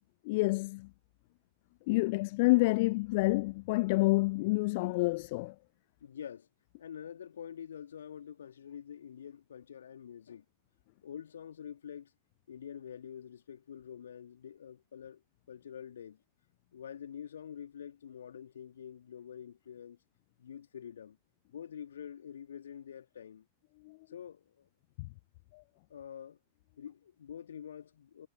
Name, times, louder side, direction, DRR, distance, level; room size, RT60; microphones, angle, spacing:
voice 1, 0.2-0.9 1.9-5.6 23.8-24.0 25.0-25.1 25.5-25.6, left 23 dB, 50° left, 0.5 m, -28 dB
voice 2, 6.0-6.5 6.8-10.4 11.0-12.1 12.5-15.2 15.5-16.2 16.7-20.0 20.4-21.2 21.5-23.4 24.1-24.7 25.9-26.4 26.8-28.3, left 8 dB, 65° left, 2.3 m, -46 dB
figure-of-eight pair, 90°, 0 cm